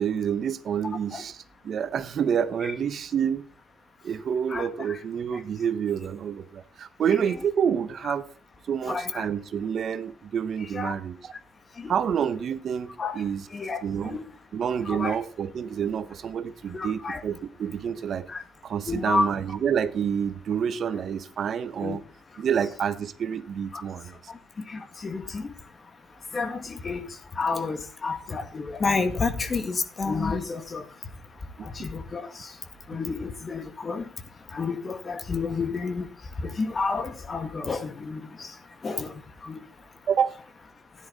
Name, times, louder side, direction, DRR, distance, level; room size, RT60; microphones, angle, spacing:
voice 1, 0.0-3.5 4.0-8.3 8.7-11.3 11.9-13.5 13.8-14.2 14.5-18.3 18.6-22.0 22.4-24.2 31.6-31.7 40.1-40.3, right 8 dB, 60° right, 1.0 m, -28 dB
voice 2, 8.9-9.3 10.7-10.9 11.8-11.9 13.0-13.2 13.5-14.2 14.9-15.2 16.7-17.2 18.3-18.4 18.9-19.3 21.8-22.0 23.7-23.8 24.7-25.5 26.3-27.1 27.4-30.9 31.6-32.5 32.9-34.0 34.5-36.1 36.4-38.5 38.8-39.1 39.4-39.6, left 4 dB, 35° left, 1.9 m, -30 dB
13.0 x 10.5 x 4.1 m
cardioid pair, 90°, 0 cm